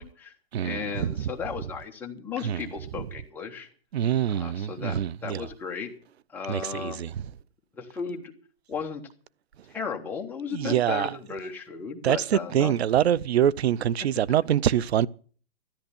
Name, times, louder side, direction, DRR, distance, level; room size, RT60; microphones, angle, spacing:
voice 1, 0.0-0.3 0.6-3.7 4.3-5.9 6.3-7.0 7.7-8.3 8.7-9.0 9.7-12.7, left 6 dB, 5° left, 1.1 m, -35 dB
voice 2, 0.5-1.3 2.4-2.6 3.0-3.1 3.9-5.5 6.5-7.3 10.5-11.1 12.0-15.1, right 10 dB, 80° right, 0.7 m, -25 dB
13.5 x 10.5 x 7.0 m
hypercardioid pair, 170°, 31 cm